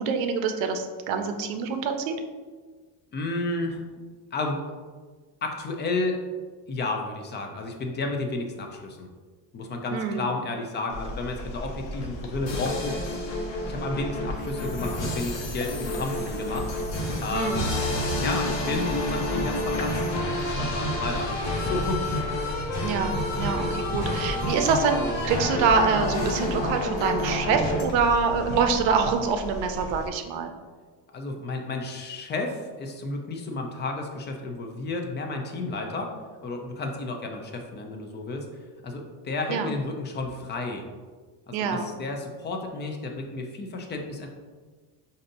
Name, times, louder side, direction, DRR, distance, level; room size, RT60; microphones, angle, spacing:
voice 1, 0.0-2.1 9.9-10.3 17.3-17.7 22.8-30.5 39.5-39.7 41.5-41.9, right 5 dB, 65° right, 6 dB, 0.6 m, -25 dB
voice 2, 3.1-3.8 4.3-4.6 5.4-6.2 6.7-9.1 9.5-16.7 17.2-17.9 18.1-20.1 20.4-22.3 31.1-36.1 36.4-38.5 38.8-40.8 41.5-44.3, left 2 dB, 25° left, 3 dB, 0.4 m, -32 dB
sound 1, 10.9-30.1, left 1 dB, 55° left, 0.7 m, -36 dB
sound 2, 12.5-27.8, left 1 dB, 85° left, 1.1 m, -29 dB
5.1 x 2.7 x 2.6 m, 1.4 s
cardioid pair, 120°, 49 cm